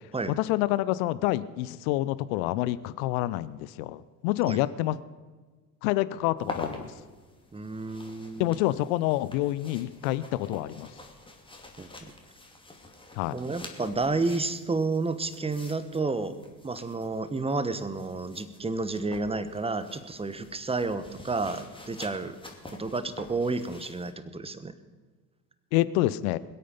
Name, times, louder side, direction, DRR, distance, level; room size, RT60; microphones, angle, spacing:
voice 1, 0.3-5.0 5.8-6.9 8.4-10.9 13.2-13.4 25.7-26.4, left 16 dB, 60° left, 17 dB, 0.7 m, -27 dB
sound 1, 6.4-24.1, left 2 dB, 10° left, 2.4 m, -46 dB
voice 2, 7.5-8.6 11.8-11.9 13.3-16.4 16.6-22.4 22.8-24.7, right 3 dB, 10° right, 12 dB, 1.1 m, -31 dB
21.5 x 8.5 x 5.6 m, 1.4 s
figure-of-eight pair, 60°, 49 cm